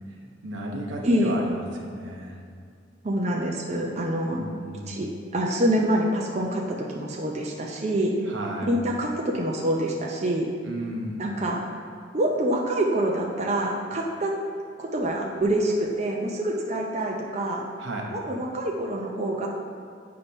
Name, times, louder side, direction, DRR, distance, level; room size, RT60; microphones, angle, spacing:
voice 1, 0.4-2.4 4.3-5.0 8.3-8.8 10.6-11.2 17.8-18.1, right 1 dB, 85° right, 0 dB, 0.9 m, -34 dB
voice 2, 1.0-1.4 3.0-4.4 4.9-8.1 8.6-10.5 11.2-11.6 12.1-14.3 14.8-17.6 18.1-19.5, right 1 dB, 35° right, -1 dB, 0.5 m, -26 dB
7.9 x 2.8 x 5.4 m, 2.3 s
head